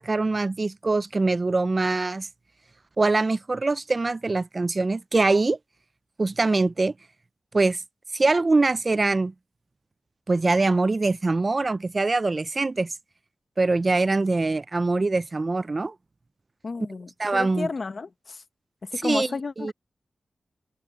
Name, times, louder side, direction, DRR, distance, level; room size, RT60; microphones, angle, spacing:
voice 1, 0.0-2.3 3.0-5.6 6.2-6.9 7.5-7.8 8.1-9.3 10.3-12.9 13.6-15.9 17.2-17.7 19.0-19.3 19.6-19.7, right 3 dB, 30° right, 0.3 m, -23 dB
voice 2, 16.6-18.4 18.8-19.7, left 4 dB, 40° left, 0.9 m, -32 dB
open air
wide cardioid pair, 175°, 0 cm